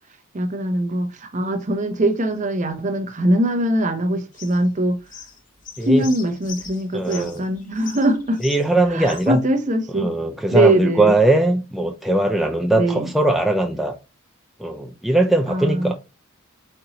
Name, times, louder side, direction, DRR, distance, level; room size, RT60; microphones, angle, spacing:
voice 1, 0.3-5.0 5.8-8.4 8.9-10.1 10.5-11.1 12.7-13.1 15.5-15.9, right 1 dB, 35° right, 0.6 m, -21 dB
sound 1, 4.3-9.3, left 6 dB, 40° left, 0.7 m, -41 dB
voice 2, 6.9-7.4 8.4-9.4 10.0-13.9 14.6-15.9, right 2 dB, ahead, 0.3 m, -20 dB
4.4 x 3.9 x 2.9 m
head